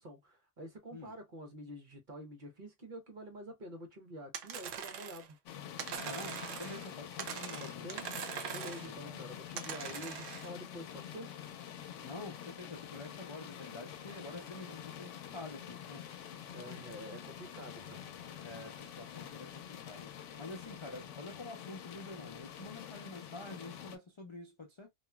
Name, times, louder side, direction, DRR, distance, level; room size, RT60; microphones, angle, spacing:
voice 1, 0.0-5.4 7.6-8.1 8.5-11.3 16.5-18.1, equal, 45° right, 1.0 m, -48 dB
sound 1, 4.3-5.3 5.8-6.9 7.2-8.9 9.6-10.5, right 8 dB, 80° right, 0.9 m, -42 dB
sound 2, 5.5-24.0, left 9 dB, 75° left, 0.9 m, -47 dB
voice 2, 6.0-8.0 8.6-9.2 9.8-10.0 12.0-16.1 16.7-16.8 18.4-20.1 20.4-24.9, left 2 dB, 50° left, 0.3 m, -48 dB
2.9 x 2.4 x 2.2 m
omnidirectional pair, 1.3 m